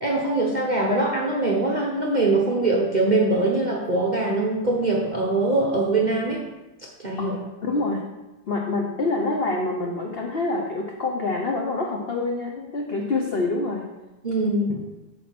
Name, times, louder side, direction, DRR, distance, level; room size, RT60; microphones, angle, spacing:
voice 1, 0.0-6.4 7.0-7.4 14.2-14.8, right 2 dB, 40° right, -3 dB, 0.7 m, -22 dB
voice 2, 7.2-8.0 8.5-13.8, left 3 dB, 70° left, 1 dB, 0.5 m, -26 dB
8.3 x 3.9 x 6.0 m, 1.0 s
omnidirectional pair, 2.1 m